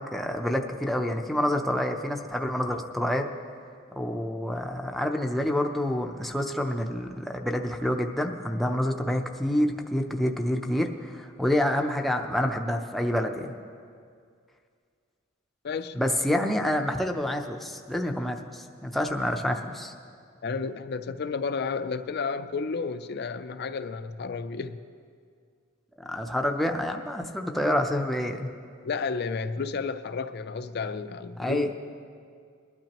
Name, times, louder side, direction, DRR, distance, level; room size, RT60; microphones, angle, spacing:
voice 1, 0.1-3.2 3.9-13.5 15.9-19.9 26.1-28.5 31.4-31.7, left 1 dB, ahead, 0.6 m, -27 dB
voice 2, 15.6-16.0 20.4-24.8 28.8-31.7, left 4 dB, 50° left, 0.4 m, -32 dB
21.5 x 12.0 x 3.0 m
head